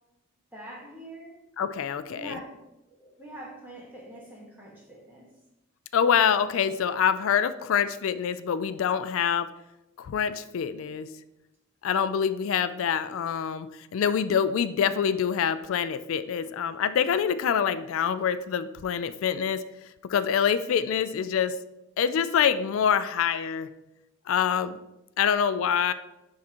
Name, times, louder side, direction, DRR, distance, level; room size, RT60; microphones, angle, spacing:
voice 1, 0.5-1.4 2.1-2.6 2.9-5.3, right 1 dB, 10° right, -3 dB, 1.4 m, -44 dB
voice 2, 1.6-2.4 5.9-9.5 10.0-11.1 11.8-19.6 20.1-21.5 22.0-23.7 24.3-24.8 25.2-25.9, left 7 dB, 85° left, 13 dB, 0.3 m, -25 dB
10.0 x 3.7 x 2.9 m, 0.94 s
head